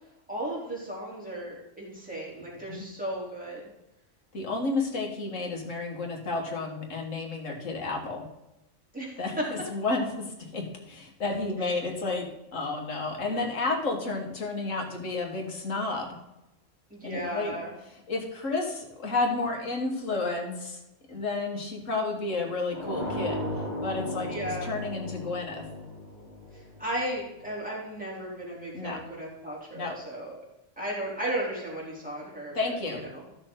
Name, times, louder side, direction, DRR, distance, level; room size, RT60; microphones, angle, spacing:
voice 1, 0.3-3.7 8.9-9.4 11.6-11.7 13.2-13.4 16.9-17.7 24.3-24.7 26.5-30.4 30.8-33.2, right 1 dB, 5° right, -5 dB, 3.4 m, -35 dB
voice 2, 4.3-8.3 9.2-10.1 10.4-12.3 12.5-16.2 17.0-17.5 18.1-20.8 21.1-23.4 23.8-25.6 28.7-29.0 29.7-29.9 32.5-33.0, left 3 dB, 85° left, 2 dB, 2.0 m, -31 dB
sound 1, 22.7-27.4, equal, 65° right, 4.0 m, -36 dB
14.0 x 6.5 x 3.8 m, 0.90 s
omnidirectional pair, 1.3 m